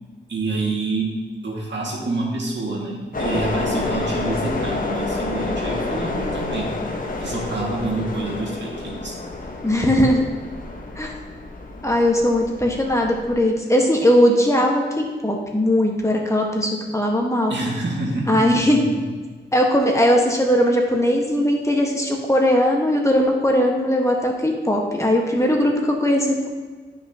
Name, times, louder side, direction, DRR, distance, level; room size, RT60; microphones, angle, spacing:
voice 1, 0.3-6.8 7.2-9.1 17.5-19.1, right 2 dB, 70° right, -2 dB, 2.1 m, -27 dB
sound 1, 3.1-13.3, left 3 dB, 45° left, 1.2 m, -29 dB
voice 2, 9.6-10.2 10.9-11.1 11.8-17.5 18.3-18.8 19.5-26.5, equal, 15° left, 0 dB, 1.4 m, -19 dB
12.5 x 5.8 x 2.9 m, 1.4 s
wide cardioid pair, 80°, 19 cm